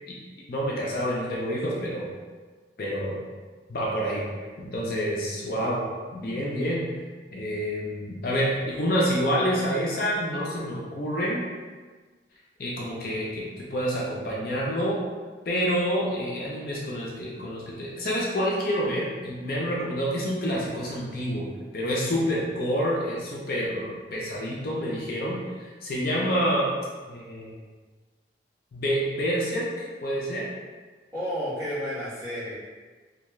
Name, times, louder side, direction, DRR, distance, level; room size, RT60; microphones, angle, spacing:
voice 1, 0.5-2.1 2.8-3.1 3.7-4.2 4.6-5.8 6.1-6.9 7.3-11.4 12.6-15.0 15.5-21.5 21.7-26.7 27.1-27.5 28.7-30.4, equal, 55° left, -4 dB, 0.5 m, -28 dB
voice 2, 31.1-32.6, equal, 15° right, -11 dB, 0.8 m, -31 dB
2.3 x 2.2 x 3.0 m, 1.4 s
head